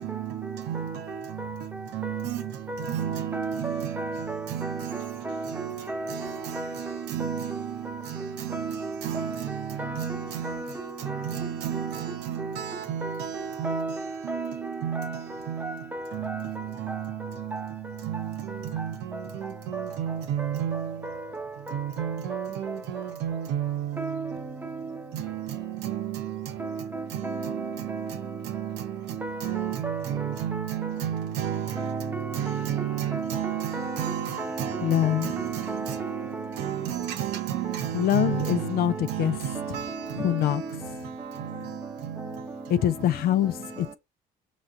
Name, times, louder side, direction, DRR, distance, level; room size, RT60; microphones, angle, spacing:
voice 1, 0.0-1.5 1.9-2.5 2.8-4.0 4.5-5.1 5.5-5.6 6.1-7.8 8.1-8.7 9.0-10.6 11.0-13.9 14.2-15.7 16.1-17.7 18.0-21.0 21.7-24.4 25.1-26.6 27.1-36.0 36.6-40.3 40.7-40.8 41.4-41.6 42.0-42.3, right 10 dB, 85° right, 0.9 m, -32 dB
voice 2, 3.3-4.8 5.3-5.5 5.9-6.2 6.5-6.7 7.2-7.6 8.2-9.2 9.8-10.1 10.4-10.7 11.1-11.3 11.7-11.9 12.4-12.6 13.0-13.2 13.6-14.4 15.0-15.1 15.6-16.3 17.5-17.6 19.7-19.8 20.4-20.5 22.0-22.4 24.0-24.3 26.6-26.7 26.9-27.5 29.2-29.4 29.8-30.0 30.5-30.9 31.8-32.6 33.1-33.4 33.7-34.8 35.0-35.2 35.7-36.0 36.3-36.4 38.3-38.5 40.2-40.5, right 2 dB, 10° right, 0.8 m, -34 dB
voice 3, 34.8-35.3 37.9-38.9 39.2-39.4 40.2-40.6 42.7-43.9, left 12 dB, 65° left, 0.5 m, -24 dB
5.7 x 3.1 x 2.6 m
cardioid pair, 110°, 17 cm